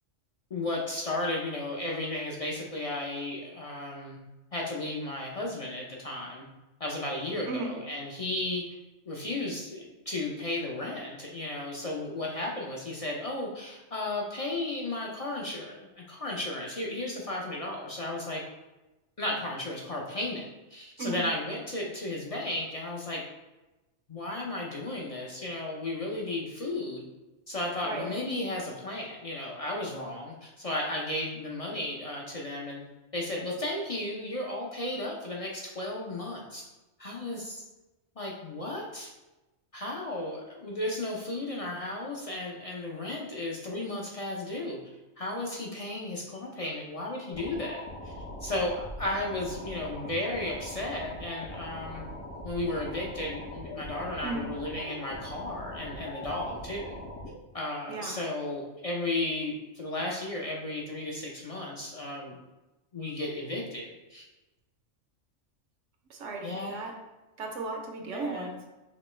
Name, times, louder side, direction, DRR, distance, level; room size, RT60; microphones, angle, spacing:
voice 1, 0.5-4.2 4.5-6.5 6.8-8.6 9.1-18.4 19.2-23.2 24.1-27.0 27.5-32.8 33.1-36.6 37.0-37.6 38.2-39.1 39.7-44.8 45.2-52.0 52.4-57.0 57.5-62.3 62.9-64.3 66.4-66.9 68.1-68.6, left 2 dB, 50° left, -2 dB, 0.4 m, -34 dB
sound 1, 47.3-57.3, left 1 dB, 80° left, 2.0 m, -41 dB
voice 2, 66.1-66.9 67.4-68.5, right 3 dB, 80° right, 2 dB, 1.1 m, -35 dB
5.2 x 3.0 x 3.1 m, 1.1 s
omnidirectional pair, 1.3 m